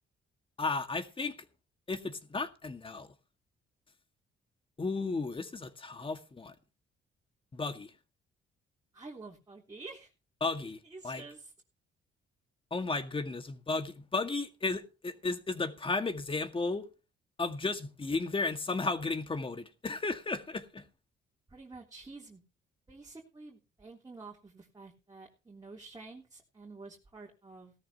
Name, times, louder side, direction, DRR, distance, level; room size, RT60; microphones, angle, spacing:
voice 1, 0.6-1.3 1.9-3.1 4.8-6.5 7.5-7.9 10.4-11.2 12.7-16.9 17.4-20.8, left 3 dB, 25° left, 2.0 m, -34 dB
voice 2, 8.9-10.1 10.6-11.5 21.5-22.4 22.9-27.7, right 3 dB, 20° right, 3.4 m, -49 dB
17.5 x 13.5 x 3.0 m
cardioid pair, 90°, 20 cm